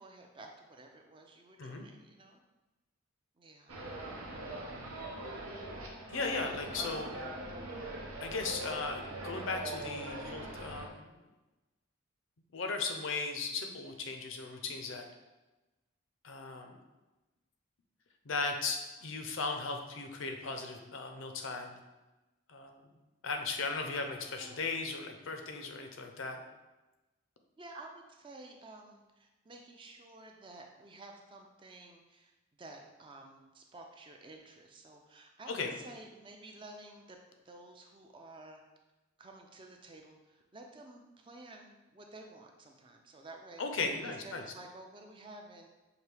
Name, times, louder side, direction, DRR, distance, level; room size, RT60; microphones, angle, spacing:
voice 1, 0.0-2.4 3.4-3.7 24.1-24.6 27.6-32.3 32.6-37.2 37.4-38.6 39.2-43.6 44.0-45.7, right 2 dB, 25° right, 2 dB, 0.4 m, -52 dB
sound 1, 3.7-10.9, right 1 dB, 85° right, 0.8 m, -42 dB
voice 2, 6.1-7.2 8.2-11.1 12.5-15.1 16.2-16.8 18.2-21.8 22.5-22.8 23.2-26.4 35.5-35.8 43.6-44.4, left 4 dB, 65° left, 4 dB, 0.5 m, -37 dB
5.9 x 2.7 x 3.3 m, 1.1 s
head